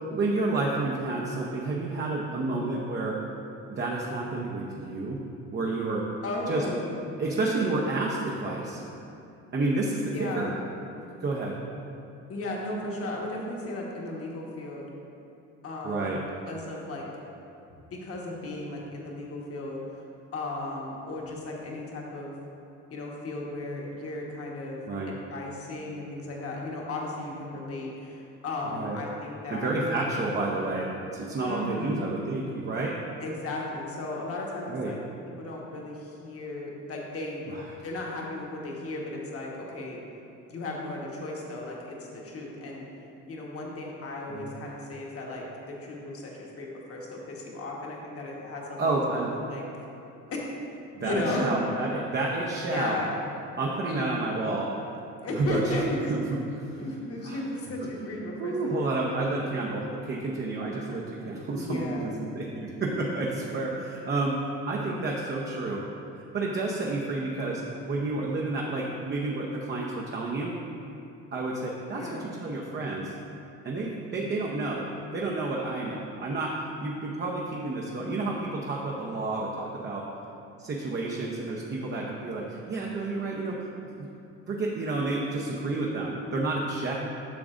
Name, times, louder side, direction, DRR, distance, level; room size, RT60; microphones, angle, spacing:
voice 1, 0.1-3.2 3.7-5.2 5.5-6.1 6.5-6.6 7.2-8.8 9.5-10.5 11.2-11.6 15.8-16.2 24.9-25.1 28.7-29.0 29.5-33.0 34.7-34.9 37.5-37.7 44.3-44.5 48.8-49.3 50.9-53.0 53.6-54.8 55.3-55.8 56.1-56.4 56.7-56.8 57.2-57.4 58.4-65.8 66.3-67.6 67.9-70.6 71.3-73.1 73.6-74.9 75.1-80.1 80.6-83.7 84.0-84.1 84.5-87.0, right 2 dB, 35° right, -3 dB, 0.7 m, -30 dB
voice 2, 6.2-6.9 10.1-10.6 12.3-14.9 15.6-16.2 16.4-17.0 17.7-19.8 20.3-22.3 22.9-24.8 25.1-29.9 31.4-32.1 33.2-35.0 35.3-37.4 37.8-40.0 40.5-42.0 42.2-42.8 43.3-48.9 49.3-49.6 50.3-50.4 51.0-51.5 52.5-53.2 53.9-54.3 55.2-56.1 56.8-58.7 59.0-59.3 60.7-60.8 61.5-62.1 71.9-72.3, left 2 dB, 45° left, -2 dB, 1.4 m, -35 dB
8.6 x 5.9 x 2.5 m, 2.8 s
cardioid pair, 95°, 31 cm